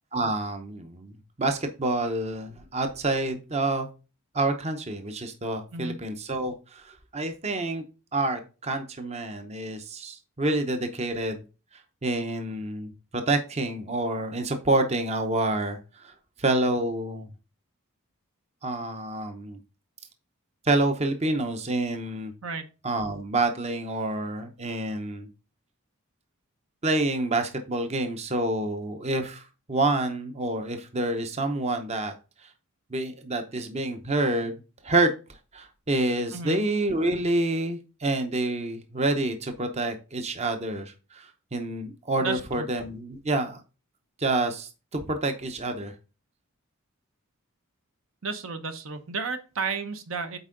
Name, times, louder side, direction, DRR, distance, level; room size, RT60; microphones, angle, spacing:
voice 1, 0.1-1.1 1.4-3.9 4.3-7.8 8.1-11.4 12.0-16.1 16.4-17.3 18.6-19.6 20.6-22.3 22.8-25.3 26.8-32.1 32.4-32.5 32.9-34.6 34.8-35.1 35.5-43.6 44.2-45.9, right 2 dB, 30° right, 7 dB, 0.7 m, -28 dB
voice 2, 42.2-42.7 48.2-50.4, right 4 dB, 65° right, 8 dB, 0.9 m, -32 dB
8.0 x 4.6 x 3.8 m, 0.32 s
head